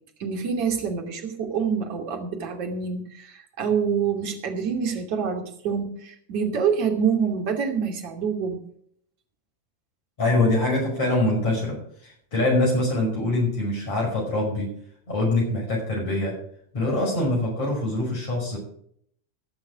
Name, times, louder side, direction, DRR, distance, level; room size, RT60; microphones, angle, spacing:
voice 1, 0.2-8.6, right 6 dB, 45° right, 4 dB, 2.5 m, -26 dB
voice 2, 10.2-14.7 15.1-16.4 16.7-18.6, left 2 dB, 50° left, -2 dB, 5.5 m, -24 dB
17.5 x 6.4 x 6.2 m, 0.66 s
figure-of-eight pair, 90°, 0 cm